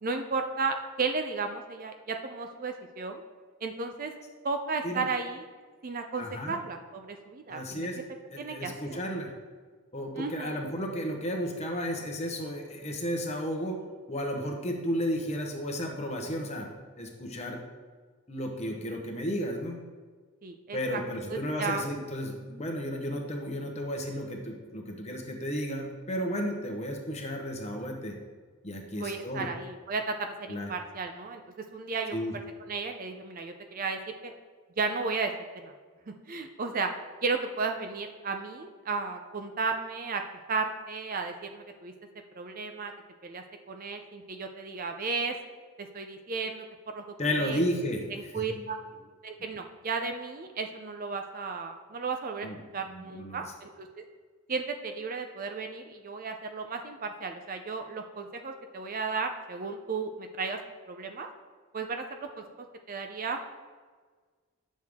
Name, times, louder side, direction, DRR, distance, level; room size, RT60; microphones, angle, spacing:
voice 1, 0.0-3.2 3.6-4.1 4.4-5.4 5.8-7.9 8.4-9.0 10.2-10.6 20.4-21.0 21.3-21.9 28.9-31.4 31.7-34.3 34.8-35.7 36.1-36.9 37.2-40.2 40.5-41.9 42.4-42.9 43.2-45.3 45.8-46.6 46.9-47.0 47.4-47.6 48.1-48.8 49.2-53.9 54.5-60.6 60.9-61.3 61.7-63.4, right 4 dB, 40° right, 5 dB, 0.5 m, -34 dB
voice 2, 6.2-6.5 7.5-8.0 8.3-9.3 9.9-13.8 14.1-16.7 17.0-17.6 18.3-19.8 20.7-28.2 28.6-29.5 30.5-30.7 32.1-32.4 47.2-48.7 52.4-52.6 52.9-53.4, equal, 30° left, 2 dB, 1.0 m, -33 dB
9.4 x 6.3 x 3.6 m, 1.5 s
head